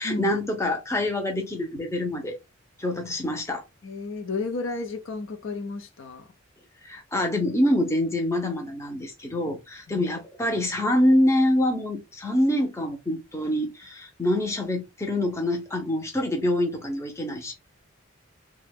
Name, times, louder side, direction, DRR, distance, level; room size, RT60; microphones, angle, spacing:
voice 1, 0.0-2.4 2.8-3.6 6.8-17.5, left 1 dB, 15° left, 0.7 m, -25 dB
voice 2, 3.8-6.3 9.9-10.1, left 3 dB, 65° left, 0.6 m, -32 dB
3.0 x 2.3 x 3.4 m
head